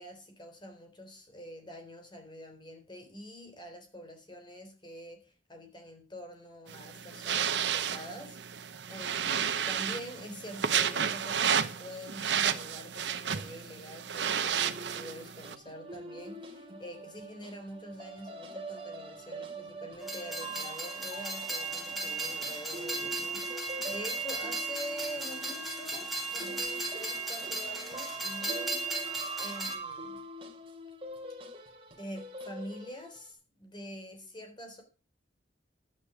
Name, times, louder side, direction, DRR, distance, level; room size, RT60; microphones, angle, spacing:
voice 1, 0.0-28.8 29.4-30.2 32.0-34.8, equal, 25° left, 3.8 m, -45 dB
sound 1, 6.7-15.5, right 8 dB, 70° right, 1.0 m, -32 dB
sound 2, 14.5-33.3, right 2 dB, 30° right, 2.6 m, -44 dB
Train, 20.0-29.8, right 3 dB, ahead, 2.9 m, -36 dB
11.5 x 9.8 x 5.0 m
head